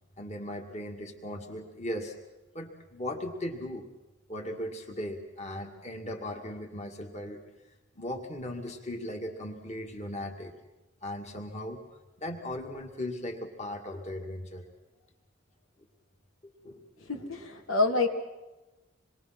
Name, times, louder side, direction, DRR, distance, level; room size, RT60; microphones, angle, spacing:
voice 1, 0.2-2.1 2.5-3.9 4.3-7.4 7.9-10.5 11.0-11.8 12.2-14.6 16.4-17.1, left 1 dB, 35° left, 1 dB, 2.3 m, -38 dB
voice 2, 17.1-18.1, left 3 dB, 75° left, 1 dB, 3.2 m, -27 dB
27.5 x 21.5 x 6.1 m, 1.0 s
head